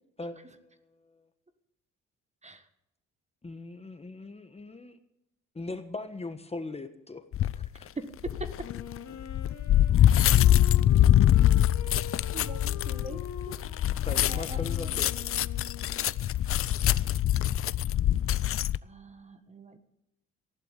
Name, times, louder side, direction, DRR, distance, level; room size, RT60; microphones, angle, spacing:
voice 1, 0.2-1.2 3.4-5.0 5.5-7.9 14.0-15.1, left 3 dB, 20° left, 9 dB, 1.4 m, -40 dB
sound 1, 7.3-7.7 8.2-18.8, left 12 dB, 50° left, 0.5 m, -24 dB
Wind instrument woodwind instrument, 8.6-16.3, left 7 dB, 65° left, 2.7 m, -45 dB
voice 2, 12.3-13.6 14.3-14.6 18.8-19.8, right 2 dB, 20° right, 10 dB, 1.6 m, -43 dB
15.0 x 11.5 x 8.2 m, 0.83 s
cardioid pair, 90°, 30 cm